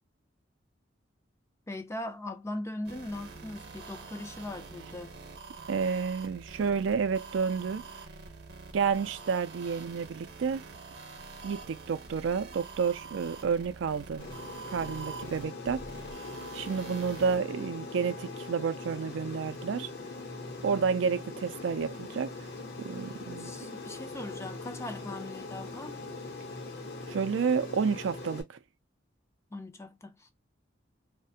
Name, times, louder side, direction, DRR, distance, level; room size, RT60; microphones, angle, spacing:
voice 1, 1.7-5.1 23.4-26.0 29.5-30.3, left 1 dB, 15° left, 0.4 m, -40 dB
sound 1, 2.8-17.4, right 4 dB, 60° right, 0.7 m, -46 dB
voice 2, 5.7-7.8 8.7-10.6 11.4-14.2 14.7-15.8 16.5-19.9 20.6-22.3 22.8-23.5 27.1-28.4, right 6 dB, 75° right, 0.4 m, -30 dB
Aircraft, 14.2-28.4, left 2 dB, 55° left, 0.8 m, -41 dB
2.4 x 2.1 x 2.6 m
head